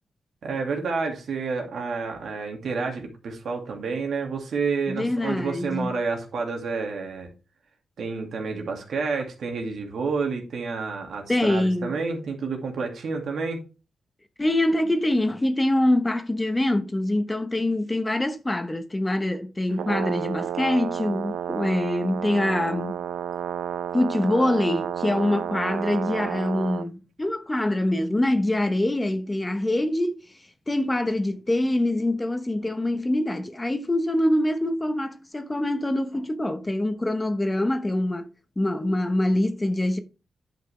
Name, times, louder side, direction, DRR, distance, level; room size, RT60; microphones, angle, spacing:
voice 1, 0.4-7.3 8.0-13.6, right 4 dB, 75° right, 2.3 m, -29 dB
voice 2, 4.9-5.9 11.3-11.9 14.4-23.0 23.9-30.2 30.7-38.3 38.6-40.0, left 1 dB, 20° left, 1.0 m, -24 dB
Brass instrument, 19.7-26.9, right 9 dB, 90° right, 0.3 m, -31 dB
10.5 x 5.8 x 3.3 m
cardioid pair, 95°, 0 cm